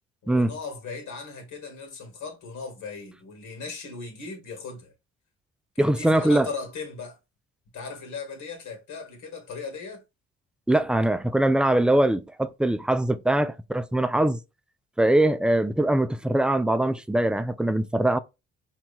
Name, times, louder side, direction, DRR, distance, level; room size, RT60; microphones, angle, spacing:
voice 1, 0.2-4.9 5.7-7.2 7.7-10.0, left 4 dB, 75° left, 1.4 m, -38 dB
voice 2, 5.8-6.5 10.7-14.4 15.0-18.2, right 1 dB, 5° right, 0.3 m, -22 dB
4.3 x 2.8 x 2.3 m
cardioid pair, 90°, 30 cm